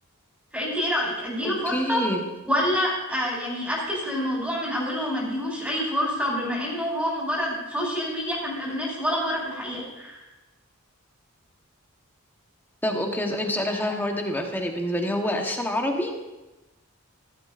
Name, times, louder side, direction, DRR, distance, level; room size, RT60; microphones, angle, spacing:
voice 1, 0.5-2.0 2.4-10.2, equal, 5° right, -4 dB, 4.6 m, -27 dB
voice 2, 1.4-2.2 12.8-16.1, left 1 dB, 10° left, 2 dB, 1.1 m, -27 dB
15.5 x 13.0 x 2.5 m, 1.1 s
head